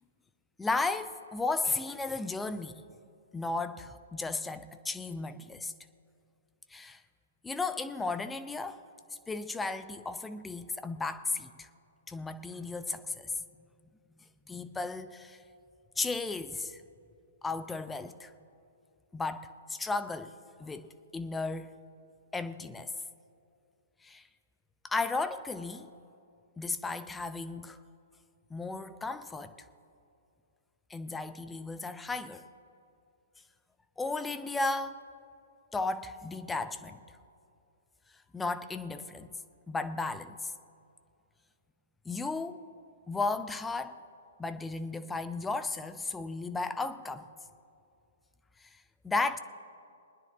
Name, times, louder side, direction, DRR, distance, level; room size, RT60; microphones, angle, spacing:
voice 1, 0.6-2.9 3.3-5.7 6.7-7.0 7.4-8.8 9.3-11.7 12.1-13.4 14.5-15.4 16.0-16.8 17.4-18.3 19.1-20.3 20.6-21.7 22.3-22.9 24.0-24.3 24.8-25.9 26.6-27.8 28.5-29.5 30.9-32.4 34.0-35.0 35.7-37.0 38.3-39.3 39.7-40.5 42.0-42.6 43.1-44.0 44.4-47.3 48.6-49.4, left 3 dB, 10° left, 11 dB, 0.6 m, -34 dB
22.5 x 10.0 x 3.4 m, 2.5 s
figure-of-eight pair, 120°, 0 cm